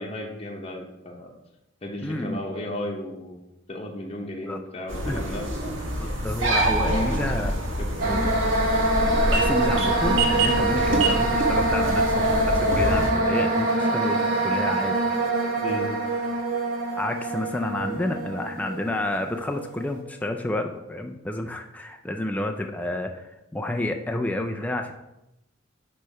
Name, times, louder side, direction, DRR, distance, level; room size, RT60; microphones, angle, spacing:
voice 1, 0.0-1.3 1.8-5.8 6.5-7.3 7.8-8.3 15.6-15.9, left 1 dB, 30° left, 1 dB, 0.9 m, -35 dB
voice 2, 2.0-2.4 4.5-4.6 5.1-5.4 6.0-7.5 8.0-8.3 9.3-15.0 17.0-24.9, left 1 dB, 10° left, 4 dB, 0.3 m, -30 dB
sound 1, 4.9-13.1, right 1 dB, 75° right, 1.4 m, -26 dB
sound 2, 8.0-19.9, right 2 dB, 45° right, 1.4 m, -24 dB
6.5 x 3.1 x 5.4 m, 0.91 s
head